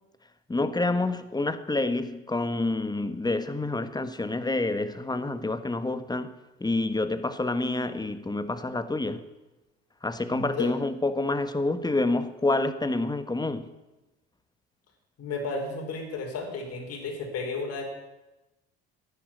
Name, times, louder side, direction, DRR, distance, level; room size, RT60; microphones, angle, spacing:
voice 1, 0.5-9.2 10.0-13.7, left 2 dB, 10° left, 1.4 m, -28 dB
voice 2, 10.3-10.7 15.2-17.8, left 3 dB, 50° left, 5.1 m, -33 dB
11.0 x 10.5 x 9.8 m
hypercardioid pair, 65°, 32 cm